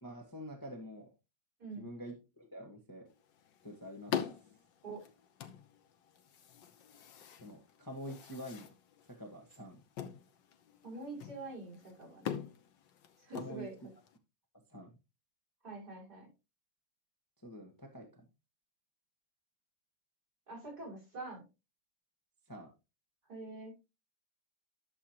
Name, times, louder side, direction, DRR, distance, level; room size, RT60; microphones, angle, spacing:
voice 1, 0.0-1.1 1.8-3.1 3.6-4.1 7.4-8.7 9.1-9.8 13.3-13.7 14.5-15.0 17.4-18.2 22.5-22.7, equal, 10° left, 1 dB, 1.5 m, -47 dB
sound 1, 3.1-14.2, left 8 dB, 75° left, 1.6 m, -45 dB
voice 2, 10.8-12.4 13.2-13.7 15.6-16.3 20.5-21.4 23.3-23.7, right 3 dB, 55° right, -4 dB, 6.8 m, -45 dB
11.0 x 7.2 x 2.9 m, 0.27 s
omnidirectional pair, 2.0 m